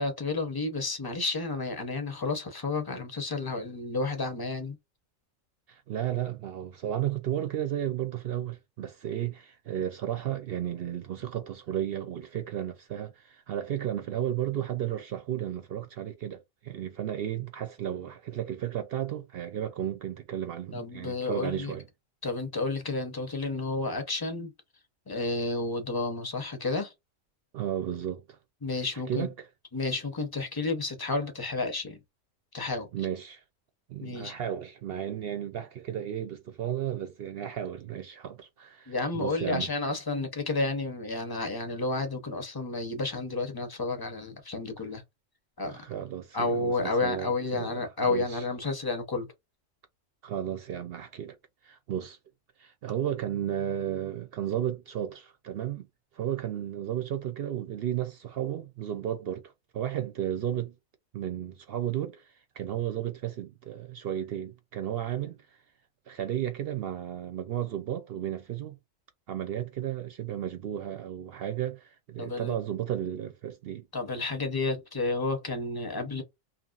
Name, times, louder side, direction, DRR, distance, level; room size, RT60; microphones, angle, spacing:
voice 1, 0.0-4.8 20.7-21.7 22.2-24.5 25.1-26.9 28.6-29.3 29.7-32.0 32.5-32.9 34.0-34.3 38.9-45.0 45.6-45.9 46.3-49.3 72.2-72.5 73.9-76.2, left 3 dB, 25° left, 0.6 m, -31 dB
voice 2, 5.7-21.9 27.5-28.4 29.1-29.5 32.9-33.4 33.9-39.7 45.6-48.4 50.2-51.4 51.6-52.2 52.6-55.9 56.1-60.8 61.1-65.6 66.1-68.8 69.3-73.9, right 10 dB, 65° right, 0.6 m, -33 dB
2.8 x 2.4 x 2.4 m
omnidirectional pair, 1.3 m